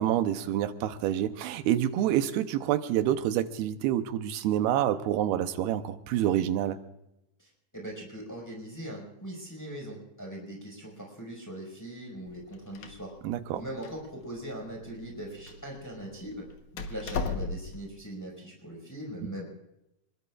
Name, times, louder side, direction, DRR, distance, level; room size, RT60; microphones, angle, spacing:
voice 1, 0.0-6.8 13.2-13.6, right 11 dB, 80° right, 9 dB, 2.7 m, -27 dB
voice 2, 7.4-13.1 13.5-16.4 16.7-19.4, right 1 dB, 5° left, -2 dB, 5.0 m, -40 dB
Door, 12.3-17.9, left 4 dB, 65° left, 2.2 m, -39 dB
26.0 x 22.0 x 2.5 m, 0.87 s
omnidirectional pair, 4.4 m